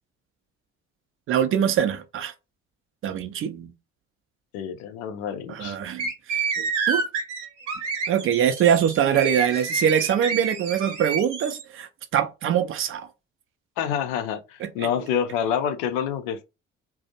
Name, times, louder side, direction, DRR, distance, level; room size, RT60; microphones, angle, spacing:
voice 1, 1.3-2.3 3.0-3.7 5.5-7.0 8.1-13.1 14.6-14.9, right 9 dB, 40° right, 0.4 m, -23 dB
voice 2, 4.5-5.8 13.8-16.4, left 8 dB, 65° left, 0.5 m, -27 dB
sound 1, 6.0-11.6, right 5 dB, 75° right, 0.7 m, -28 dB
2.4 x 2.0 x 2.7 m
figure-of-eight pair, 50°, 35 cm